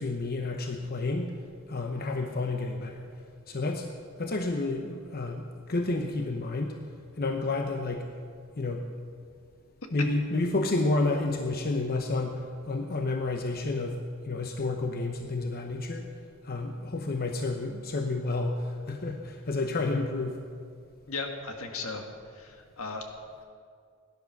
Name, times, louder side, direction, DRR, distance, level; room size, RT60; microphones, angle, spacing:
voice 1, 0.0-1.3 1.7-3.1 3.5-3.9 4.2-6.8 7.2-8.1 8.6-8.9 9.9-16.1 16.4-20.4, left 2 dB, 45° left, 4 dB, 0.8 m, -30 dB
voice 2, 21.1-22.0 22.3-23.1, left 3 dB, 75° left, 4 dB, 1.7 m, -36 dB
17.5 x 10.5 x 6.0 m, 2.2 s
head